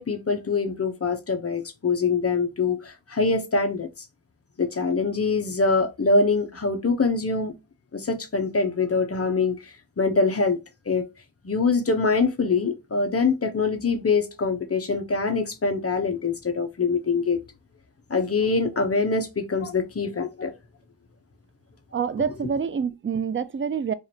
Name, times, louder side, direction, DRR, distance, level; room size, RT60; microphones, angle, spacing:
voice 1, 0.0-3.9 4.6-7.5 7.9-10.6 10.9-11.1 11.4-17.4 18.1-20.5, left 4 dB, 35° left, 0.9 m, -24 dB
voice 2, 21.9-23.9, right 6 dB, 30° right, 0.4 m, -26 dB
4.9 x 2.5 x 2.8 m
wide cardioid pair, 95°, 42 cm